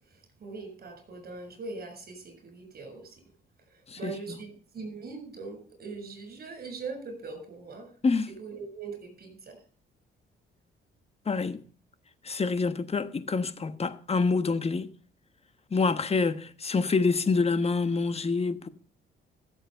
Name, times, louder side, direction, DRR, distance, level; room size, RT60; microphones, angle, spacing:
voice 1, 0.0-3.2 3.7-7.9 8.4-9.6, right 4 dB, 50° right, 7.0 m, -41 dB
voice 2, 3.9-4.4 8.0-8.3 11.3-11.6 12.2-14.9 15.7-18.7, left 4 dB, 30° left, 1.3 m, -27 dB
14.0 x 7.8 x 6.9 m
cardioid pair, 90°, 20 cm